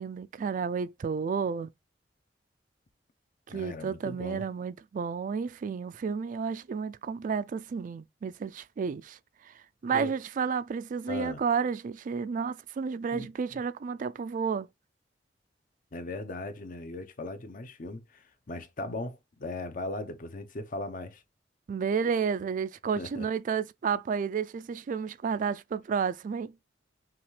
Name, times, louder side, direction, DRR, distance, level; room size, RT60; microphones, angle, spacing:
voice 1, 0.0-1.7 3.5-9.2 9.8-14.7 21.7-26.5, right 6 dB, 45° right, 0.3 m, -31 dB
voice 2, 3.5-4.4 9.9-10.1 11.1-11.4 13.1-13.6 15.9-21.2 23.0-23.3, left 2 dB, 50° left, 0.7 m, -38 dB
5.8 x 2.4 x 3.2 m
head